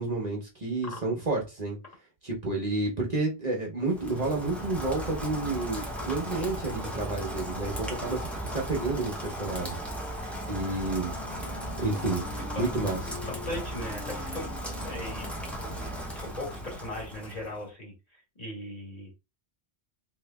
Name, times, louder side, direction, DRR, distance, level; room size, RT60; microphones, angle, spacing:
voice 1, 0.0-1.8 2.2-9.8 10.5-11.1 11.8-12.2 12.6-13.2, right 2 dB, 45° right, 1.0 m, -30 dB
Rain, 3.8-17.7, right 1 dB, ahead, 0.7 m, -36 dB
Wind instrument woodwind instrument, 10.2-16.4, left 5 dB, 85° left, 1.0 m, -46 dB
voice 2, 12.3-12.7 13.3-14.5 14.8-15.3 15.6-19.1, left 1 dB, 40° left, 1.5 m, -39 dB
3.1 x 2.8 x 3.4 m
omnidirectional pair, 1.0 m